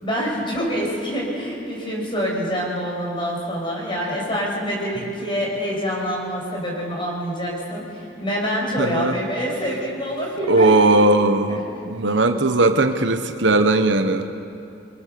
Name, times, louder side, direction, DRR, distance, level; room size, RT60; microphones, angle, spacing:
voice 1, 0.0-10.8 11.5-11.9, equal, 25° left, -2 dB, 6.0 m, -26 dB
voice 2, 8.8-9.2 10.5-14.3, right 2 dB, 70° right, 8 dB, 1.1 m, -18 dB
27.0 x 23.0 x 6.9 m, 2.8 s
head